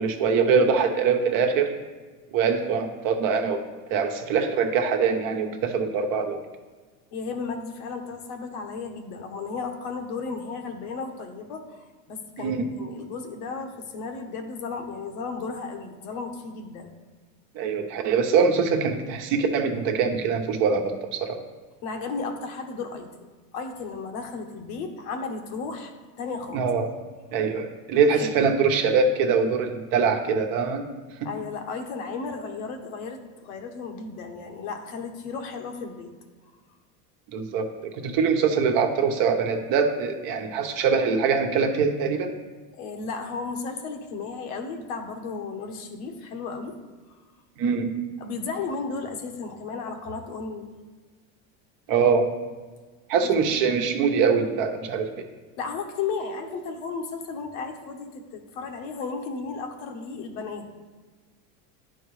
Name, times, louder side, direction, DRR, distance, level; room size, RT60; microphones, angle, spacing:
voice 1, 0.0-1.7 2.3-3.6 3.9-6.4 12.4-12.7 17.5-21.4 26.5-26.9 27.3-30.8 37.3-37.7 38.0-42.3 47.6-47.9 51.9-52.3 53.1-55.2, right 5 dB, 55° right, 4 dB, 1.1 m, -23 dB
voice 2, 7.1-16.9 21.8-23.3 23.5-26.7 28.1-28.5 31.2-36.1 42.7-46.8 48.2-50.7 53.2-53.3 55.6-60.7, left 4 dB, 70° left, 4 dB, 1.1 m, -34 dB
10.5 x 4.5 x 3.2 m, 1.4 s
supercardioid pair, 125°, 41 cm